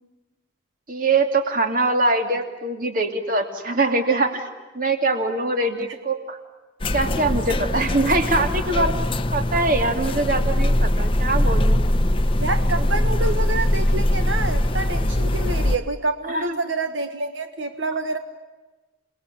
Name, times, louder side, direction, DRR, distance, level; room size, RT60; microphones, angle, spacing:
voice 1, 0.9-4.5 4.7-6.4 6.9-9.0 9.3-11.8 16.3-16.6, right 2 dB, 45° right, 6 dB, 2.7 m, -23 dB
sound 1, 6.8-15.8, left 1 dB, 25° left, 0.9 m, -21 dB
voice 2, 12.4-18.2, right 3 dB, 80° right, 7 dB, 1.4 m, -27 dB
28.5 x 20.5 x 9.9 m, 1.2 s
head